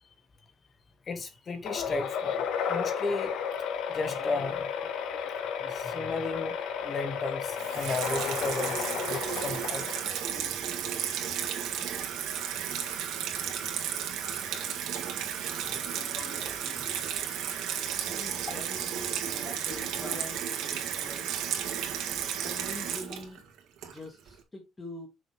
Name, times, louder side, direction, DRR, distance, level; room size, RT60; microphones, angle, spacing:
voice 1, 1.1-3.3 3.9-5.2 5.6-10.5 15.9-16.9 19.5-19.6 20.0-20.2 22.2-22.3, left 3 dB, 30° left, 1.3 m, -35 dB
sound 1, 1.6-10.4, left 7 dB, 70° left, 1.4 m, -33 dB
Water tap faucet / Sink (filling or washing), 7.6-24.3, right 9 dB, 85° right, 2.0 m, -33 dB
voice 2, 18.0-21.5 22.4-23.4 23.8-25.1, left 1 dB, 15° left, 1.5 m, -45 dB
6.4 x 6.4 x 3.0 m
cardioid pair, 175°, 0 cm